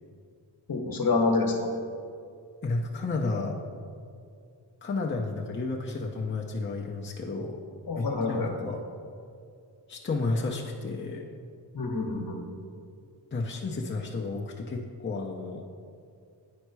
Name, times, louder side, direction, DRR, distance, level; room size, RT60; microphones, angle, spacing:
voice 1, 0.7-1.7 7.9-8.5 11.7-12.4, left 3 dB, 50° left, 3 dB, 1.3 m, -27 dB
voice 2, 2.6-3.6 4.8-7.6 8.0-8.8 9.9-11.2 13.3-15.6, left 3 dB, 25° left, -1 dB, 0.7 m, -32 dB
9.4 x 4.3 x 4.7 m, 2.3 s
cardioid pair, 65°, 46 cm